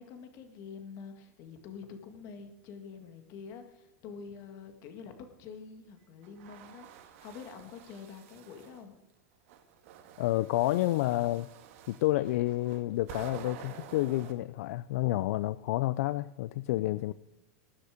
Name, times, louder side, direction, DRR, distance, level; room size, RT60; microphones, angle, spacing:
voice 1, 0.0-5.1 5.4-9.0, left 6 dB, 40° left, 7 dB, 1.8 m, -47 dB
sound 1, 6.2-8.8 9.5-14.3, right 9 dB, 60° right, 1.9 m, -49 dB
voice 2, 10.2-11.5 11.9-17.1, left 16 dB, 65° left, 16 dB, 0.4 m, -29 dB
19.5 x 9.6 x 5.0 m, 1.0 s
supercardioid pair, 160°, 8 cm